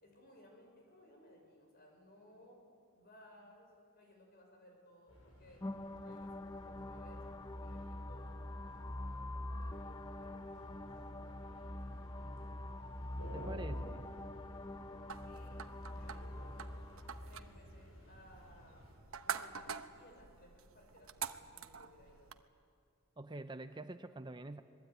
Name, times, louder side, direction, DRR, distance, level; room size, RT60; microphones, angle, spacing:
voice 1, 0.0-2.6 2.9-5.7 6.0-11.8 15.1-15.7 16.0-16.9 17.2-18.9 19.2-22.3, left 1 dB, 45° left, 1 dB, 6.3 m, -62 dB
sound 1, 5.1-18.9, equal, 80° left, 7.6 m, -55 dB
sound 2, 5.6-17.6, left 1 dB, 20° left, 0.8 m, -45 dB
voice 2, 13.3-14.1 23.2-24.6, right 2 dB, 20° right, 9 dB, 0.6 m, -46 dB
sound 3, 15.1-22.4, right 7 dB, 75° right, 1.0 m, -47 dB
26.0 x 20.5 x 9.2 m, 2.4 s
head